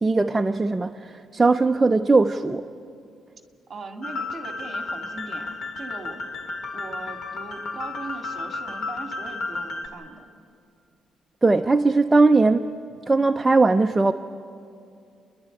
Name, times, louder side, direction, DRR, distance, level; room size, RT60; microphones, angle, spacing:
voice 1, 0.0-2.6 11.4-12.7 13.1-14.1, right 3 dB, 15° right, 6 dB, 0.5 m, -19 dB
voice 2, 3.7-6.2 6.7-10.3, right 3 dB, 30° right, 4 dB, 2.1 m, -39 dB
sound 1, 4.0-9.9, left 3 dB, 75° left, 2.0 m, -33 dB
30.0 x 11.5 x 8.9 m, 2.4 s
cardioid pair, 145°, 0 cm